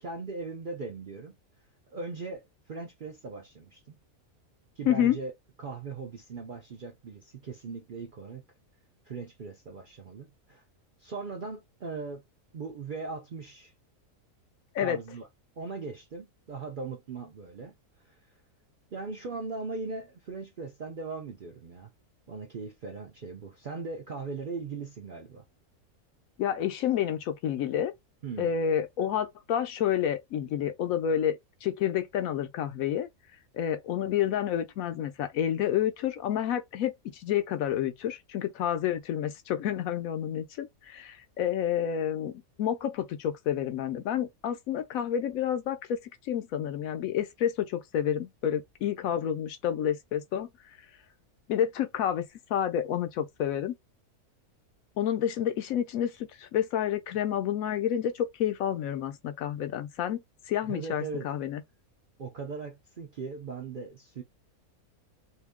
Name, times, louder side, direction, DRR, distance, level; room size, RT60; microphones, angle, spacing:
voice 1, 0.0-1.3 1.9-4.0 4.8-5.3 5.6-8.4 9.0-10.6 11.0-12.2 12.5-13.7 14.8-15.3 15.6-17.8 18.0-18.2 18.9-21.9 22.3-25.4 28.2-28.5 60.6-61.3 62.2-64.2, right 4 dB, 60° right, 0.5 m, -39 dB
voice 2, 4.9-5.2 14.7-15.0 26.4-27.9 28.4-33.1 33.5-46.0 46.2-50.5 51.5-52.2 52.5-53.7 55.0-61.6, left 9 dB, 75° left, 1.0 m, -29 dB
2.8 x 2.6 x 3.5 m
omnidirectional pair, 1.5 m